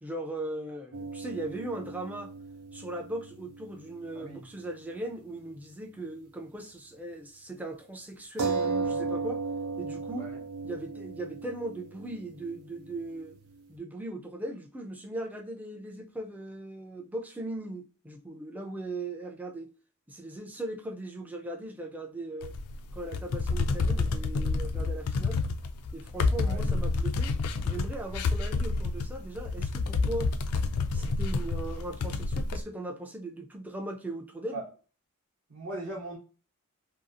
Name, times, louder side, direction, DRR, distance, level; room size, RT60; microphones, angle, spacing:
voice 1, 0.0-2.3 2.7-9.4 9.8-10.3 10.6-13.4 13.7-19.7 20.1-22.5 22.9-25.5 25.9-27.3 27.6-30.3 30.9-34.6, right 1 dB, 5° right, 0.4 m, -38 dB
sound 1, 0.9-4.8 5.1-5.2 8.4-13.6, right 4 dB, 85° right, 0.6 m, -36 dB
voice 2, 4.1-4.5 10.2-10.3 26.4-26.6 34.5-34.6 35.5-36.2, right 2 dB, 55° right, 0.8 m, -38 dB
sound 2, 22.4-32.6, left 3 dB, 75° left, 0.4 m, -29 dB
2.7 x 2.3 x 2.5 m
head